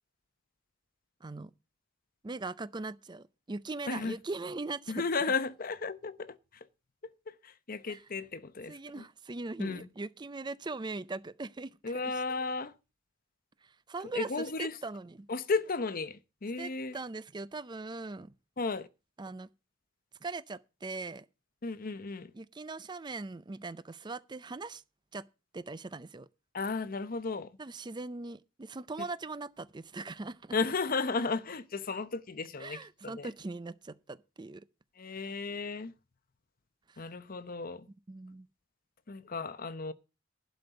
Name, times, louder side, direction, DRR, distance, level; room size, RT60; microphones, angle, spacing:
voice 1, 1.2-1.5 2.2-5.0 7.9-8.0 8.7-11.8 12.0-12.2 13.6-15.3 16.6-18.3 19.2-19.5 20.2-21.3 22.3-24.8 25.1-25.2 25.5-26.3 27.6-30.5 32.6-34.6 36.9-37.1 38.1-38.5, right 3 dB, 20° right, 0.5 m, -40 dB
voice 2, 3.9-4.2 4.9-6.4 7.3-9.0 9.6-9.9 11.8-12.7 14.1-14.7 15.3-17.0 18.6-18.9 21.6-22.3 26.5-27.5 30.5-33.3 35.0-35.9 37.0-37.9 39.1-39.9, left 4 dB, 45° left, 0.8 m, -34 dB
11.5 x 5.2 x 7.9 m
head